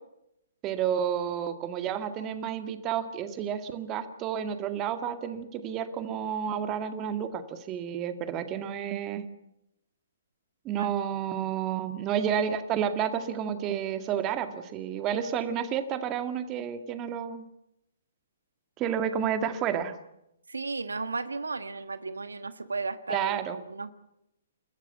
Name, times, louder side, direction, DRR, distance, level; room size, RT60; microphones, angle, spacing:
voice 1, 0.6-9.3 10.7-17.4 18.8-20.0 23.1-23.6, right 9 dB, 25° right, 9 dB, 2.0 m, -30 dB
voice 2, 20.5-23.9, right 3 dB, 90° right, 12 dB, 1.4 m, -34 dB
29.0 x 14.0 x 8.2 m, 0.83 s
hypercardioid pair, 135°, 0 cm